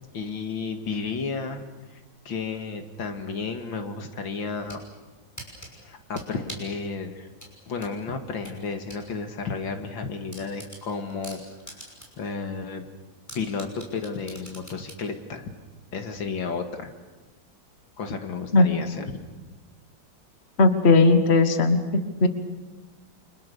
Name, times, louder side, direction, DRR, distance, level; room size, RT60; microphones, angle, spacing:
voice 1, 0.1-1.6 2.3-4.8 5.8-7.3 7.7-11.4 12.2-12.9 13.3-15.5 15.9-16.9 18.0-19.1, left 4 dB, 75° left, 6 dB, 2.7 m, -32 dB
sound 1, 4.4-4.8 5.4-6.8 7.4-9.0 9.4-9.5 9.9-10.0 10.3-12.3 12.6-12.7 13.3-15.0, equal, 10° left, 5.8 m, -43 dB
voice 2, 20.6-22.3, left 3 dB, 35° left, 8 dB, 1.7 m, -18 dB
30.0 x 25.0 x 6.8 m, 1.2 s
omnidirectional pair, 2.1 m